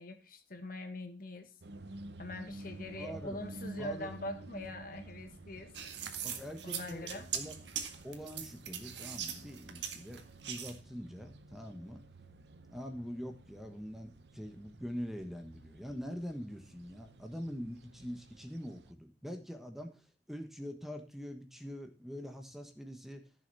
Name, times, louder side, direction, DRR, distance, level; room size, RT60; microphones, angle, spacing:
voice 1, 0.0-1.5 2.2-5.7 6.6-7.3, left 2 dB, 55° left, 7 dB, 1.7 m, -43 dB
sound 1, 1.6-18.9, right 2 dB, 70° right, 0.9 m, -51 dB
voice 2, 3.0-3.4 3.8-4.1 6.2-7.5 8.0-10.2 10.5-12.0 12.7-23.2, equal, ahead, 5 dB, 1.3 m, -44 dB
sound 2, 5.7-10.8, right 9 dB, 85° right, 1.7 m, -40 dB
14.5 x 6.9 x 4.1 m, 0.35 s
head